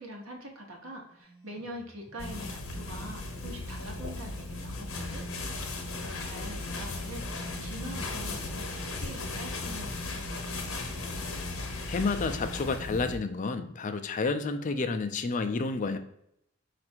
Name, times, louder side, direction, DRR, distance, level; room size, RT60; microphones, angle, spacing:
voice 1, 0.0-5.2 5.9-10.8, equal, 85° right, 2 dB, 1.1 m, -44 dB
sound 1, 1.2-9.7, right 2 dB, 15° right, 1.5 m, -57 dB
sound 2, 2.2-13.2, left 2 dB, 85° left, 0.8 m, -36 dB
voice 2, 11.9-16.0, left 4 dB, 35° left, 8 dB, 0.3 m, -30 dB
4.5 x 2.5 x 4.3 m, 0.76 s
head